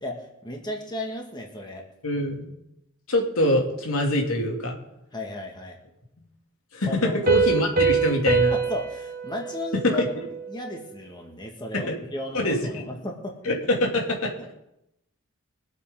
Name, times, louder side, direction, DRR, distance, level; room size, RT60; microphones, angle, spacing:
voice 1, 0.0-1.8 5.1-5.8 6.9-7.2 8.5-10.0 10.5-13.3, left 1 dB, 20° left, 1 dB, 2.0 m, -34 dB
voice 2, 2.0-2.5 3.1-4.8 6.7-8.5 9.8-10.1 11.7-11.9 12.3-12.8 13.4-14.5, left 1 dB, 85° left, 0 dB, 2.7 m, -24 dB
Piano, 7.3-10.7, right 5 dB, 45° right, 1.6 m, -25 dB
23.0 x 8.4 x 3.8 m, 0.84 s
head